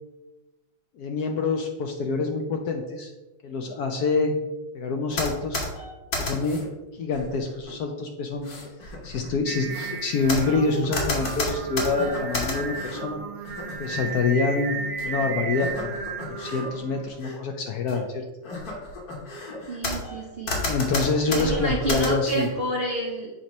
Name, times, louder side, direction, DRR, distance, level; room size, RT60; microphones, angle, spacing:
voice 1, 1.0-3.1 3.4-4.4 4.7-5.6 6.2-6.7 6.9-8.5 9.0-9.7 10.0-13.2 13.8-14.8 15.0-16.0 16.3-18.2 20.7-22.5, left 4 dB, 75° left, 4 dB, 0.9 m, -26 dB
sound 1, 5.1-6.7 7.1-7.7 8.3-13.0 13.4-14.0 15.0-15.1 15.5-16.7 17.0-17.4 17.9-18.0 18.4-20.2 20.5-22.5, left 2 dB, 50° left, 1.6 m, -32 dB
Singing, 9.5-17.0, right 5 dB, 50° right, 1.0 m, -34 dB
voice 2, 19.7-20.6 21.3-23.3, right 2 dB, 75° right, -2 dB, 0.5 m, -29 dB
7.2 x 2.9 x 5.2 m, 1.1 s
omnidirectional pair, 2.3 m